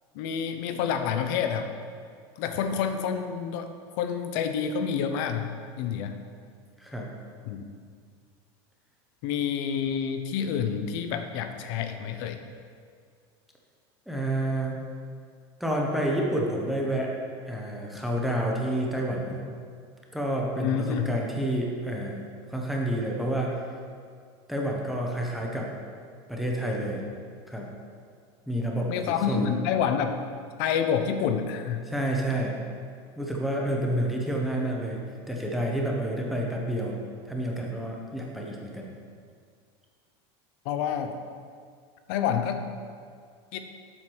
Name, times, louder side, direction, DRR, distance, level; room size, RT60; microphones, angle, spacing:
voice 1, 0.1-1.7 2.4-3.7 4.0-6.2 7.4-7.7 9.2-12.4 20.6-21.1 28.9-30.2 30.6-31.8 40.6-41.1 42.1-42.6 43.5-43.6, left 7 dB, 55° left, 8 dB, 0.7 m, -28 dB
voice 2, 14.1-14.8 15.6-17.1 17.5-19.4 20.1-22.3 22.5-23.6 24.5-25.7 26.3-27.0 27.5-27.7 28.5-29.5 31.9-32.6 33.2-35.0 35.3-37.0 37.3-38.9, right 1 dB, ahead, -2 dB, 0.8 m, -29 dB
7.7 x 5.8 x 4.6 m, 2.1 s
supercardioid pair, 160°, 14 cm